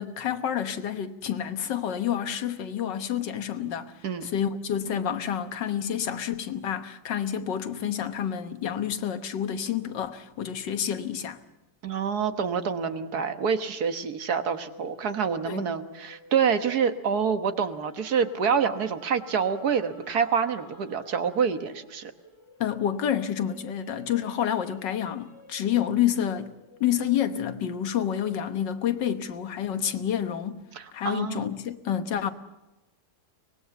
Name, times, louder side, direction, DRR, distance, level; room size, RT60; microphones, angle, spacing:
voice 1, 0.0-3.9 4.2-11.4 15.5-15.7 22.6-26.5 26.8-30.6 30.9-32.3, left 9 dB, 85° left, 1.9 m, -29 dB
voice 2, 11.8-22.1 30.8-31.5, right 6 dB, 65° right, 1.8 m, -27 dB
sound 1, 14.6-28.3 28.7-30.4, left 1 dB, 15° left, 5.3 m, -54 dB
24.0 x 19.5 x 7.0 m
omnidirectional pair, 1.9 m